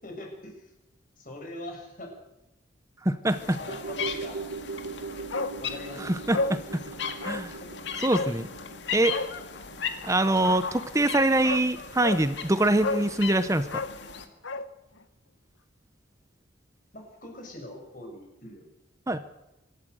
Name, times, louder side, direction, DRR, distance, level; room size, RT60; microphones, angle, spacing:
voice 1, 0.0-0.6 1.2-2.1 3.3-4.4 5.6-6.2 7.6-8.0 16.9-18.6, left 1 dB, 45° left, 1 dB, 6.6 m, -42 dB
voice 2, 3.0-3.6 6.0-6.8 7.2-7.6 8.0-8.5 8.9-9.2 10.0-13.8 19.1-19.2, right 1 dB, 15° right, 12 dB, 0.9 m, -24 dB
sound 1, 3.3-14.2, left 6 dB, 65° left, 2.1 m, -38 dB
sound 2, 3.7-12.1 12.4-12.5, right 4 dB, 75° right, 1.3 m, -41 dB
Bark, 5.3-5.6 5.9-6.0 6.3-6.6 7.2-7.5 8.1-8.4 9.0-9.3 10.9-11.0 11.4-11.7 12.0-12.2 12.8-13.1 13.6-14.7 15.0-15.1, left 3 dB, 85° left, 1.1 m, -31 dB
25.5 x 13.0 x 8.0 m, 0.95 s
head